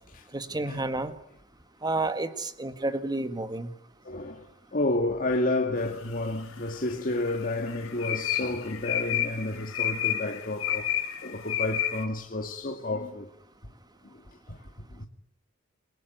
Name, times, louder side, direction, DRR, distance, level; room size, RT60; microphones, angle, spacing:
voice 1, 0.3-1.1 1.8-3.7, right 2 dB, 20° right, 1.8 m, -30 dB
voice 2, 4.0-4.5 4.7-13.3 14.5-14.6 14.9-15.1, left 2 dB, 40° left, 2.0 m, -30 dB
sound 1, 6.1-6.8 7.2-12.0, left 10 dB, 70° left, 6.7 m, -30 dB
29.0 x 19.0 x 9.3 m
head